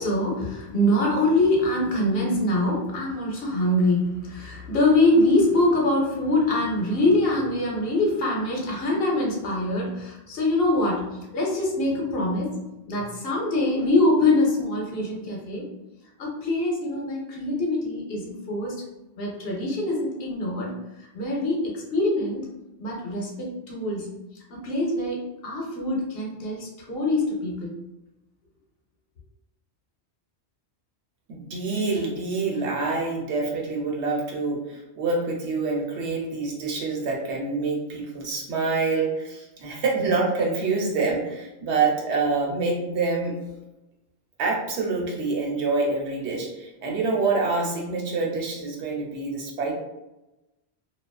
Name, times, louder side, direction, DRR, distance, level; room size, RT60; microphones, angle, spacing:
voice 1, 0.0-11.1 11.3-12.5 12.9-15.6 16.2-18.7 19.2-20.7 21.1-22.4 22.8-24.1 24.5-27.7, left 1 dB, 65° left, -2 dB, 0.8 m, -24 dB
voice 2, 31.3-43.3 44.4-49.7, right 3 dB, 85° right, -1 dB, 0.9 m, -26 dB
2.4 x 2.3 x 2.2 m, 0.96 s
omnidirectional pair, 1.1 m